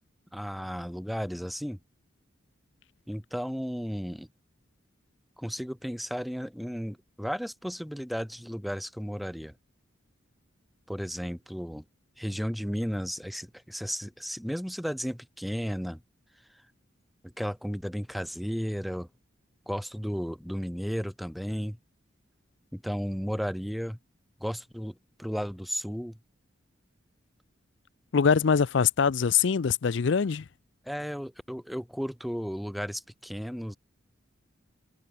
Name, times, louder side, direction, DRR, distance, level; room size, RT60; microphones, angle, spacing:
voice 1, 0.3-1.8 3.1-4.3 5.4-9.5 10.9-11.8 12.2-16.0 17.2-19.1 19.7-21.8 22.7-24.0 24.4-26.2 30.9-33.8, equal, ahead, 0.8 m, -34 dB
voice 2, 28.1-30.4, left 6 dB, 65° left, 0.5 m, -23 dB
head